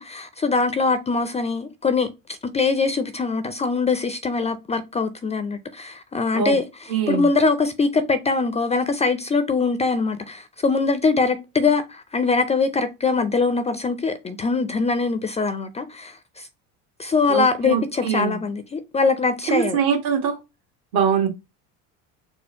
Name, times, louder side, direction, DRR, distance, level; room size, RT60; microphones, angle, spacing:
voice 1, 0.0-6.6 7.1-16.5 17.0-19.8, left 4 dB, 20° left, 0.4 m, -22 dB
voice 2, 6.9-7.2 17.3-18.4 19.5-20.4 20.9-21.3, right 7 dB, 70° right, 1.6 m, -22 dB
4.4 x 2.1 x 4.3 m
supercardioid pair, 100°, 38 cm